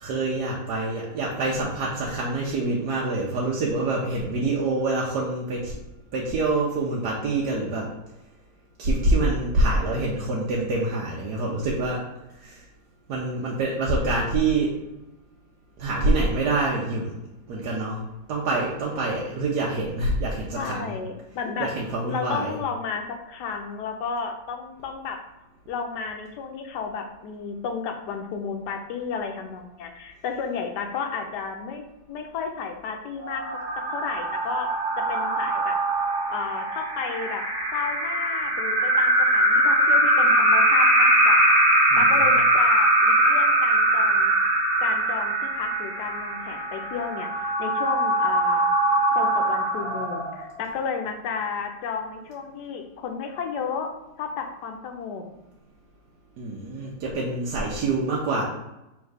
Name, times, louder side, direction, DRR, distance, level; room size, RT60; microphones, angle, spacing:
voice 1, 0.0-5.8 6.1-7.9 8.8-12.0 12.4-12.6 13.1-14.7 15.8-17.1 17.5-18.0 18.3-21.0 21.6-22.6 41.9-42.3 56.4-58.4, right 2 dB, 65° right, -4 dB, 1.2 m, -26 dB
voice 2, 20.6-21.7 22.1-25.2 25.7-33.6 33.9-35.8 36.3-37.4 37.7-41.6 42.0-44.3 44.8-48.7 49.1-53.9 54.2-55.2, left 6 dB, 70° left, 4 dB, 1.1 m, -32 dB
sound 1, 33.2-50.6, right 1 dB, 90° right, 1.7 m, -21 dB
3.6 x 3.1 x 4.8 m, 0.93 s
omnidirectional pair, 2.0 m